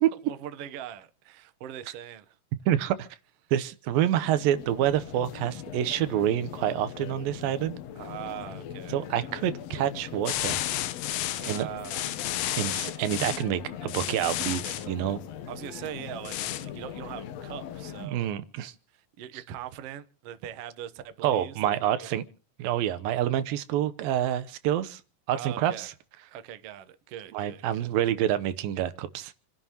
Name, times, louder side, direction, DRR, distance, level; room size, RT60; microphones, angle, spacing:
voice 1, 0.2-2.4 7.9-9.0 11.3-12.0 15.5-18.3 18.9-22.2 25.3-25.9 26.3-27.9, right 10 dB, 65° right, 1.5 m, -41 dB
voice 2, 2.7-3.1 3.5-7.8 8.9-10.8 11.4-11.7 12.6-15.2 18.0-18.7 21.2-22.2 22.6-25.0 25.3-25.9 27.3-29.3, right 11 dB, 90° right, 2.7 m, -27 dB
sound 1, 4.0-18.1, left 9 dB, 65° left, 1.7 m, -41 dB
sound 2, 10.3-13.4 13.9-14.9 16.2-16.7, left 14 dB, 90° left, 2.6 m, -32 dB
28.5 x 11.0 x 2.9 m
omnidirectional pair, 4.0 m